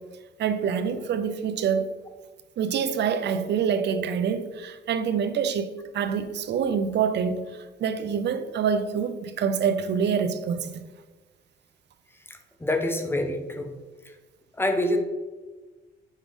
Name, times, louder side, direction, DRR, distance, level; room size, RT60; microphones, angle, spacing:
voice 1, 0.4-1.9 2.6-7.4 7.8-10.7, right 7 dB, 60° right, 0.6 m, -26 dB
voice 2, 12.3-13.7 14.6-15.0, left 1 dB, 10° left, 0.8 m, -26 dB
5.5 x 4.7 x 3.6 m
cardioid pair, 90°, 20 cm